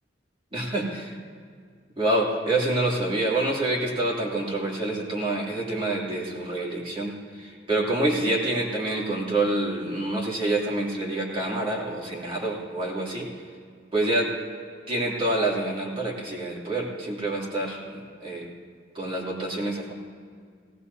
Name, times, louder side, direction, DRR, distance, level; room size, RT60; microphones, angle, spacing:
voice 1, 0.5-1.1 2.0-13.3 13.9-14.3 14.9-18.5 18.9-19.9, right 2 dB, 30° right, -5 dB, 2.9 m, -27 dB
18.5 x 18.0 x 2.8 m, 2.1 s
head